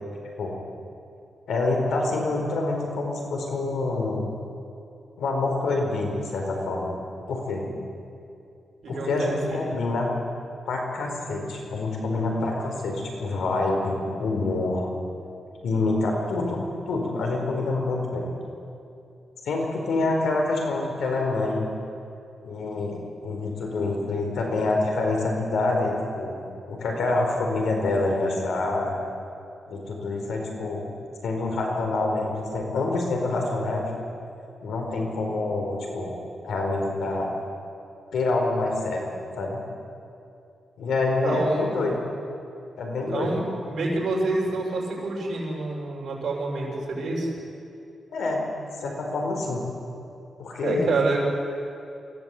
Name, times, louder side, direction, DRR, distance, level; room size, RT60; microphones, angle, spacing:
voice 1, 1.5-4.3 5.2-6.9 7.3-7.7 8.9-10.1 10.7-14.9 15.6-16.6 16.9-18.3 19.4-21.7 22.4-26.3 26.7-29.0 29.7-30.9 31.2-33.9 34.6-36.1 36.4-37.3 38.1-39.1 39.3-39.6 40.8-42.0 42.8-43.4 48.1-48.4 48.8-49.7 50.4-50.9, left 2 dB, 85° left, 1 dB, 4.7 m, -26 dB
voice 2, 8.8-9.6 41.2-41.7 43.1-47.3 50.6-51.2, right 3 dB, 60° right, -3 dB, 7.0 m, -27 dB
23.5 x 16.5 x 8.5 m, 2.6 s
cardioid pair, 115°, 0 cm